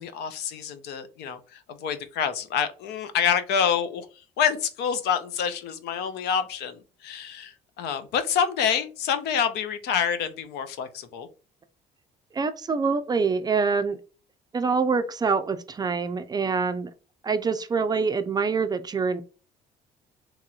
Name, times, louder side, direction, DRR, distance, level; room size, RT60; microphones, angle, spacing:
voice 1, 0.0-4.1 4.4-11.3, left 7 dB, 80° left, 10 dB, 0.6 m, -27 dB
voice 2, 12.3-14.0 14.5-16.9 17.2-19.2, right 5 dB, 25° right, 9 dB, 0.4 m, -25 dB
3.0 x 2.9 x 2.3 m, 0.35 s
cardioid pair, 110°, 17 cm